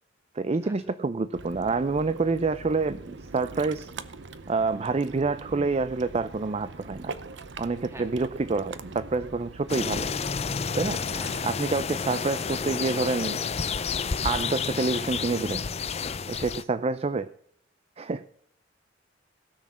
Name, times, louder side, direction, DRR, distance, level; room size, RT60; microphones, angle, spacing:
voice 1, 0.3-3.9 4.5-7.1 7.6-10.1 10.7-11.0 11.4-13.5 14.2-15.6 16.3-17.3 18.0-18.2, right 3 dB, 35° right, 13 dB, 0.4 m, -27 dB
Ocean, 1.3-11.4, right 3 dB, 65° right, 0.8 m, -43 dB
voice 2, 5.4-5.8 7.9-8.2 11.1-11.6, right 1 dB, 15° right, 6 dB, 1.7 m, -46 dB
sound 1, 9.7-16.6, left 5 dB, 35° left, 0.5 m, -30 dB
17.0 x 6.3 x 7.3 m, 0.65 s
head